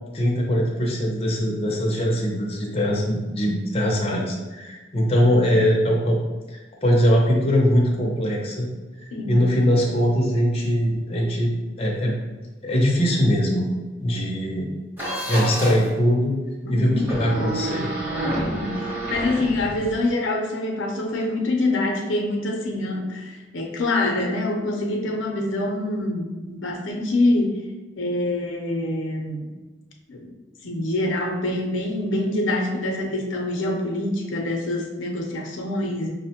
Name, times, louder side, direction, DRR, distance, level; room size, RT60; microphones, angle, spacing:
voice 1, 0.1-6.2 6.5-8.7 9.3-11.5 11.8-12.2 12.6-13.7 14.0-14.7 15.3-16.4 16.7-17.9, equal, 30° left, -2 dB, 0.5 m, -21 dB
voice 2, 9.1-9.5 16.6-17.1 18.5-27.6 28.0-29.5 30.1-30.3 30.6-36.1, left 2 dB, 80° left, 1 dB, 0.6 m, -25 dB
sound 1, 15.0-15.9 17.0-20.1, right 1 dB, 10° right, 0.9 m, -28 dB
5.2 x 2.1 x 2.8 m, 1.2 s
head